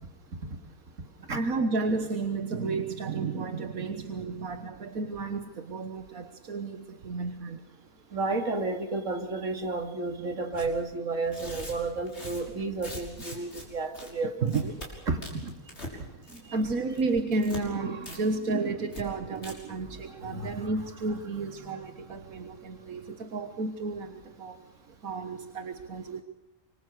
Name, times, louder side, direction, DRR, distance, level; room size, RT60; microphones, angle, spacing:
voice 1, 1.3-7.6 14.4-14.7 16.3-24.6 25.0-26.2, right 3 dB, 85° right, 7 dB, 1.8 m, -32 dB
voice 2, 8.1-14.7 15.1-15.5 16.4-16.6 20.0-20.7 21.6-21.8, right 3 dB, 65° right, 5 dB, 2.7 m, -32 dB
Tearing, 10.5-10.7 11.2-13.6 13.9-14.1 14.4-14.9 15.2-15.9 16.2-16.6 16.9-17.6 18.0-18.2 18.4-18.5 18.9-19.0 19.3-19.5, left 1 dB, 50° left, 6.4 m, -42 dB
26.5 x 24.0 x 6.6 m, 1.0 s
omnidirectional pair, 1.4 m